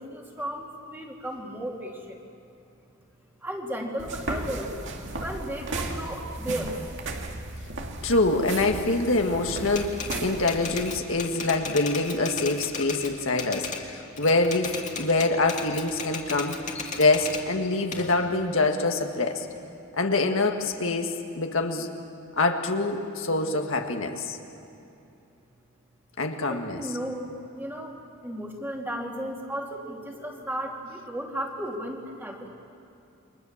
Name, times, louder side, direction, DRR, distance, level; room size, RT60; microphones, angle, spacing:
voice 1, 0.0-2.2 3.4-4.7 5.2-6.9 26.4-32.5, right 1 dB, 10° right, 0 dB, 2.6 m, -35 dB
sound 1, 4.0-11.0, right 2 dB, 55° right, 2.2 m, -35 dB
voice 2, 8.0-16.6 17.0-19.4 19.9-21.9 22.4-24.4 26.2-26.8, left 2 dB, 65° left, 4 dB, 1.7 m, -25 dB
Typewriter, 9.6-13.8 14.2-17.4 17.9-19.6, left 5 dB, 35° left, 2.1 m, -36 dB
29.0 x 24.0 x 7.3 m, 2.7 s
head